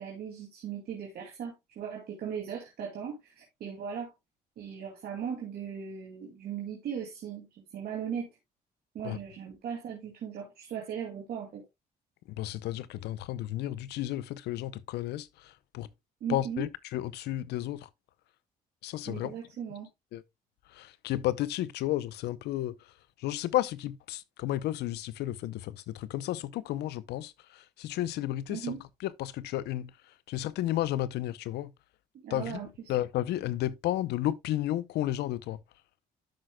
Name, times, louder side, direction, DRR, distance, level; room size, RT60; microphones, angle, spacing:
voice 1, 0.0-4.1 4.6-8.3 8.9-11.6 16.2-16.7 19.1-19.9 28.5-28.8 32.2-32.9, right 8 dB, 70° right, 2.4 m, -38 dB
voice 2, 12.3-15.9 16.3-17.9 18.8-19.4 20.1-20.2 20.7-22.9 23.2-28.8 29.0-29.9 30.3-31.7 32.3-32.6 32.9-35.6, left 14 dB, 80° left, 0.6 m, -32 dB
12.5 x 5.9 x 2.2 m
cardioid pair, 85°, 17 cm